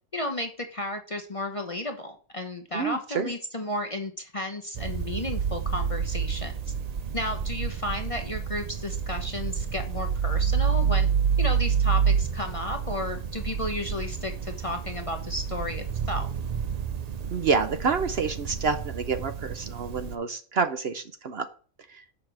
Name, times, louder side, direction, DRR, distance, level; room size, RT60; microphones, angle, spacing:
voice 1, 0.1-6.7 7.1-11.1 11.4-16.3, left 1 dB, 30° left, 4 dB, 0.8 m, -33 dB
voice 2, 2.7-3.3 17.3-21.4 21.9-22.0, right 5 dB, 55° right, 9 dB, 0.9 m, -28 dB
sound 1, 4.7-20.1, right 7 dB, 70° right, 0.3 m, -29 dB
6.9 x 5.1 x 6.0 m, 0.41 s
omnidirectional pair, 1.4 m